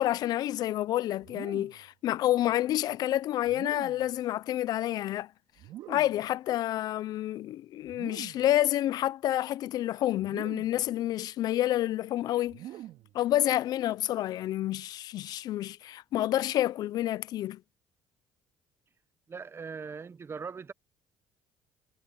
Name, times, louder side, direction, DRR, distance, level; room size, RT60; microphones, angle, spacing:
voice 1, 0.0-5.3 5.9-12.6 13.1-17.6, left 13 dB, 65° left, 0.8 m, -29 dB
sound 1, 1.2-1.9 3.4-4.2 5.6-6.3 7.8-8.6 10.2-10.9 12.5-13.2, right 14 dB, 70° right, 3.2 m, -45 dB
voice 2, 19.3-20.7, right 5 dB, 35° right, 1.3 m, -40 dB
supercardioid pair, 65°, 7 cm